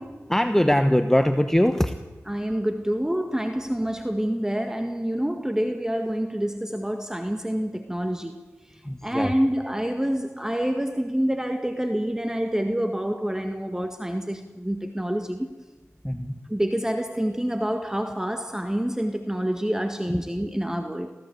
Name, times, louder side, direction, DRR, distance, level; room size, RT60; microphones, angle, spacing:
voice 1, 0.3-1.9 8.8-9.3 16.0-16.3 20.1-20.2, equal, 5° left, 1.1 m, -21 dB
voice 2, 2.3-8.4 9.0-15.5 16.5-21.1, equal, 10° right, 1.7 m, -27 dB
23.5 x 16.0 x 8.1 m
cardioid pair, 45°, 6 cm